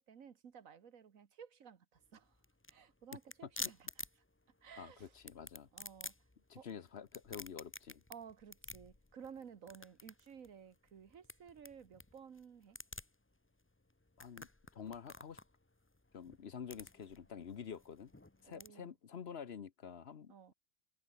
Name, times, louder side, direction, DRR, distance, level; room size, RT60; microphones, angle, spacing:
voice 1, 0.0-2.4 2.7-4.0 4.6-5.2 5.7-6.2 6.6-6.7 8.1-12.8 18.5-18.9 20.3-20.5, right 7 dB, 80° right, 1.8 m, -55 dB
sound 1, 2.0-18.7, left 2 dB, 10° left, 0.8 m, -51 dB
voice 2, 4.8-5.7 6.5-8.0 14.2-15.4 16.1-18.1 18.4-20.5, left 7 dB, 55° left, 1.1 m, -48 dB
omnidirectional pair, 1.4 m